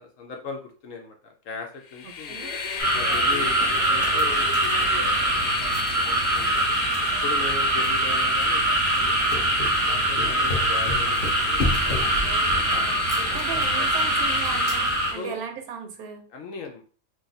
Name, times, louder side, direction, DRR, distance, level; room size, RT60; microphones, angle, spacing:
voice 1, 0.0-2.4 2.9-4.5 4.8-5.1 5.4-6.5 7.2-8.6 9.0-9.4 9.9-12.1 12.7-13.0 13.8-13.9 15.1-15.4 16.3-16.8, left 4 dB, 70° left, 3 dB, 0.9 m, -38 dB
Train, 1.9-15.4, left 5 dB, 85° left, 1.2 m, -32 dB
voice 2, 2.0-2.6 12.2-12.9 13.1-14.9 15.1-16.2, right 6 dB, 75° right, 6 dB, 1.1 m, -37 dB
sound 1, 2.8-15.1, right 2 dB, 45° right, 0.7 m, -23 dB
sound 2, 3.4-13.6, left 2 dB, 40° left, 0.8 m, -34 dB
2.6 x 2.6 x 3.9 m, 0.41 s
omnidirectional pair, 1.7 m